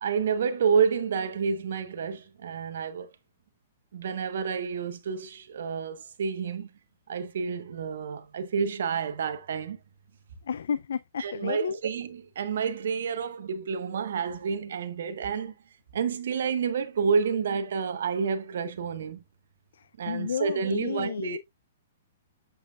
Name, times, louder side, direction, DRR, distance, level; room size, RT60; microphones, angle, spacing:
voice 1, 0.0-3.1 3.9-6.7 7.1-9.8 11.2-15.6 15.9-19.2 20.0-21.4, right 6 dB, 70° right, 1.1 m, -29 dB
voice 2, 10.5-11.8 19.7-21.4, left 7 dB, 80° left, 0.3 m, -32 dB
7.2 x 5.9 x 2.3 m
hypercardioid pair, 150°, 0 cm